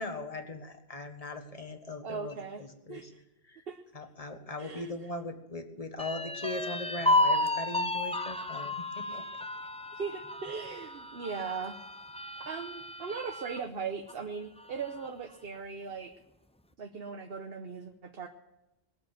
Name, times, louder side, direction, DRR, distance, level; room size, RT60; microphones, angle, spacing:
voice 1, 0.0-3.1 3.4-3.6 3.9-9.5, left 2 dB, 35° left, 6 dB, 1.5 m, -40 dB
voice 2, 2.0-2.6 2.9-3.0 3.7-3.8 4.6-4.9 9.9-11.8 12.5-16.1 16.8-18.3, right 5 dB, 70° right, 5 dB, 1.2 m, -38 dB
sound 1, 6.0-13.6 14.1-14.2 14.6-15.2, left 2 dB, 10° left, 0.5 m, -32 dB
20.5 x 7.7 x 7.6 m, 0.91 s
omnidirectional pair, 1.0 m